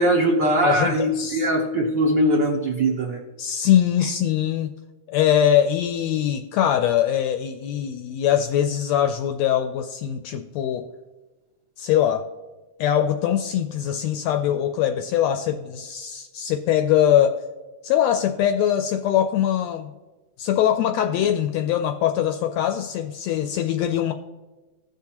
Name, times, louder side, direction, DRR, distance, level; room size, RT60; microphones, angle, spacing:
voice 1, 0.0-3.2, right 1 dB, 75° right, 0 dB, 1.0 m, -21 dB
voice 2, 0.6-1.5 3.4-4.7 5.1-10.9 11.8-12.3 12.8-17.4 17.8-19.9 20.4-24.1, left 10 dB, 80° left, 7 dB, 1.6 m, -22 dB
16.0 x 5.9 x 2.9 m, 1.2 s
omnidirectional pair, 3.5 m